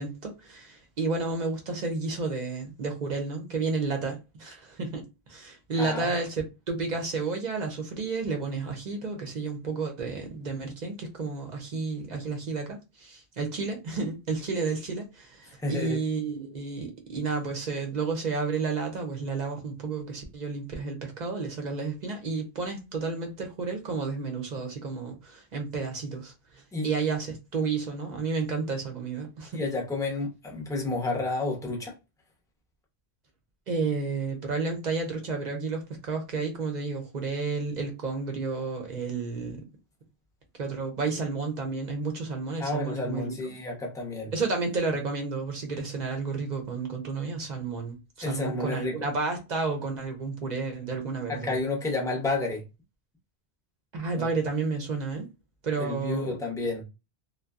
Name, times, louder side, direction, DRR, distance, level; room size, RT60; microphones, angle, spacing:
voice 1, 0.0-5.0 5.3-29.6 33.7-39.6 40.6-43.3 44.3-51.5 53.9-55.3 55.6-56.3, right 4 dB, 50° right, 0.6 m, -31 dB
voice 2, 5.8-6.1 15.6-16.0 26.7-26.9 29.5-31.9 42.6-44.3 48.2-49.0 51.3-52.6 54.2-54.3 55.8-56.8, left 2 dB, 5° left, 0.5 m, -30 dB
2.6 x 2.1 x 2.3 m
omnidirectional pair, 1.1 m